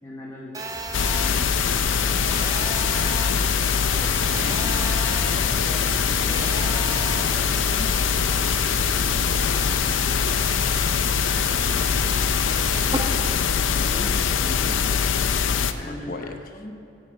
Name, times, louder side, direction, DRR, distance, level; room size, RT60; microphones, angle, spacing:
voice 1, 0.0-0.5 0.8-1.0 1.4-1.7 4.0-4.2 4.4-4.9 5.3-7.9 8.2-10.6 12.9-13.3 13.7-14.9 15.7-16.7, left 1 dB, 20° left, -4 dB, 1.0 m, -40 dB
Telephone, 0.5-13.0, right 3 dB, 20° right, 0.7 m, -35 dB
sound 1, 0.7-15.9, right 1 dB, 50° right, 1.8 m, -43 dB
sound 2, 0.9-15.7, left 7 dB, 80° left, 0.5 m, -22 dB
voice 2, 1.2-1.6 11.6-12.1 12.4-13.3 15.8-16.4, left 2 dB, 45° left, 7 dB, 0.8 m, -39 dB
9.8 x 6.1 x 8.7 m, 2.8 s
head